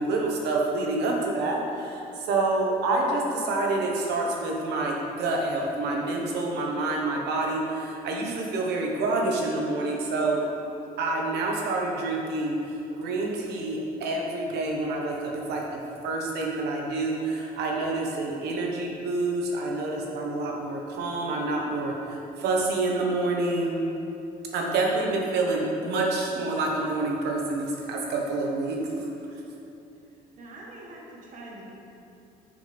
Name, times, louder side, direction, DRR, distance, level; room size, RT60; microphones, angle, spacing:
voice 1, 0.0-10.4 11.0-12.5 13.0-23.8 24.5-29.1, right 2 dB, 80° right, 0 dB, 1.1 m, -27 dB
voice 2, 30.3-31.7, right 2 dB, 50° right, -3 dB, 1.3 m, -44 dB
7.2 x 5.6 x 3.4 m, 2.8 s
cardioid pair, 110°, 17 cm